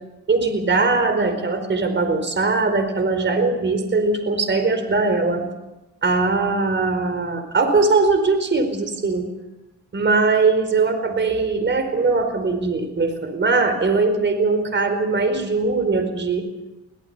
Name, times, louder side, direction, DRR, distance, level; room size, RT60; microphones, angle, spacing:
voice 1, 0.3-5.4 6.0-9.3 9.9-16.4, right 3 dB, 40° right, 8 dB, 4.7 m, -20 dB
23.5 x 17.0 x 6.9 m, 0.99 s
cardioid pair, 90°, 30 cm